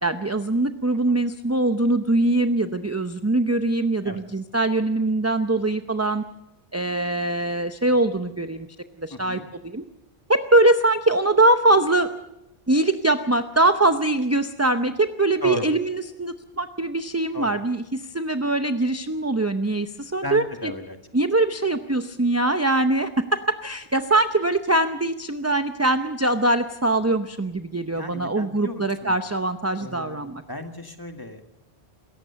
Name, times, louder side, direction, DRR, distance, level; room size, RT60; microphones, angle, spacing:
voice 1, 0.0-6.2 6.7-8.7 9.0-9.8 10.3-12.1 12.7-20.7 21.1-30.4, right 2 dB, 15° right, 8 dB, 0.7 m, -22 dB
voice 2, 9.1-9.4 15.4-15.7 17.3-17.6 20.2-21.0 27.9-29.2 29.8-31.4, left 1 dB, 20° left, 6 dB, 1.8 m, -34 dB
26.5 x 14.5 x 6.9 m, 0.91 s
omnidirectional pair, 1.0 m